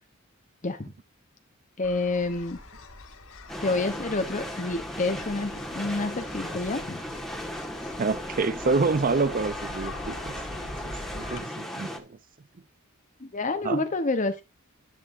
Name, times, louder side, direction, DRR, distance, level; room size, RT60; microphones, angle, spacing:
sound 1, 1.8-11.4, left 2 dB, 75° left, 2.5 m, -44 dB
voice 1, 1.8-2.6 3.6-7.0 13.2-14.4, left 3 dB, 35° left, 0.8 m, -28 dB
sound 2, 3.5-12.0, equal, ahead, 1.6 m, -36 dB
voice 2, 8.0-12.2 13.6-13.8, right 4 dB, 40° right, 0.5 m, -28 dB
11.0 x 10.0 x 2.6 m
head